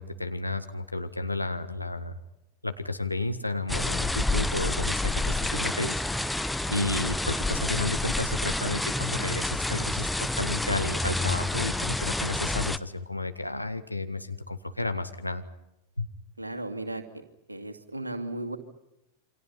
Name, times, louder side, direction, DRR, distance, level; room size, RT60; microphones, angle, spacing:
voice 1, 0.0-2.2 2.6-15.4 16.0-16.1, left 2 dB, 85° left, 8 dB, 1.7 m, -32 dB
sound 1, 3.7-12.8, left 2 dB, 5° left, 0.8 m, -29 dB
voice 2, 16.4-17.0 17.5-18.6, right 2 dB, 80° right, 5 dB, 2.4 m, -35 dB
28.0 x 25.5 x 5.7 m, 0.89 s
figure-of-eight pair, 90°, 0 cm